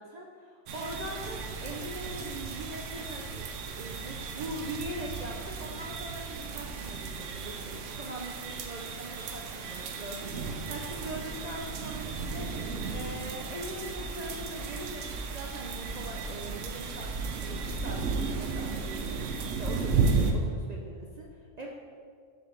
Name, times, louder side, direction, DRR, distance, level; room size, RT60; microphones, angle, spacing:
voice 1, 0.0-17.1 17.4-21.7, right 1 dB, 55° right, -1 dB, 0.4 m, -42 dB
sound 1, 0.7-20.3, right 4 dB, 75° right, 0.9 m, -34 dB
5.0 x 3.9 x 5.7 m, 2.1 s
omnidirectional pair, 1.3 m